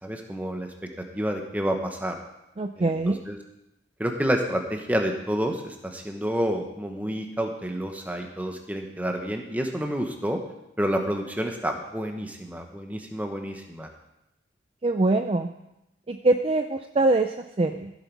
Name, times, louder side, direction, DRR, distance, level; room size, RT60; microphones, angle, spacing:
voice 1, 0.0-0.9 1.1-2.2 2.8-3.4 4.0-10.4 10.8-13.9, equal, 10° right, 3 dB, 1.1 m, -29 dB
voice 2, 2.6-3.2 14.8-15.5 16.1-17.9, right 2 dB, 30° right, 7 dB, 0.4 m, -23 dB
14.5 x 8.1 x 4.7 m, 0.88 s
head